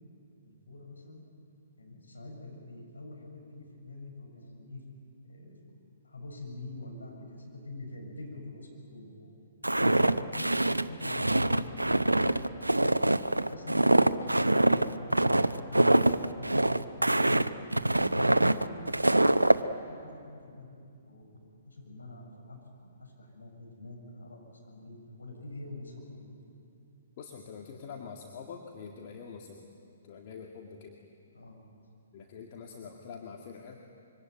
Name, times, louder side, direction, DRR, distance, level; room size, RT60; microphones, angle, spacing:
voice 1, 0.4-1.2 1.8-4.8 5.2-9.3 10.1-12.5 13.2-18.4 18.6-19.3 19.7-20.8 21.0-26.3 31.3-31.6 32.7-32.9, left 2 dB, 75° left, 1 dB, 7.2 m, -46 dB
Walk footsteps, 9.6-19.6, right 1 dB, 90° right, 0.7 m, -24 dB
voice 2, 27.2-29.7 30.0-31.0 32.1-33.8, left 6 dB, 40° left, 1 dB, 2.1 m, -45 dB
25.5 x 24.0 x 9.3 m, 2.5 s
figure-of-eight pair, 125°, 0 cm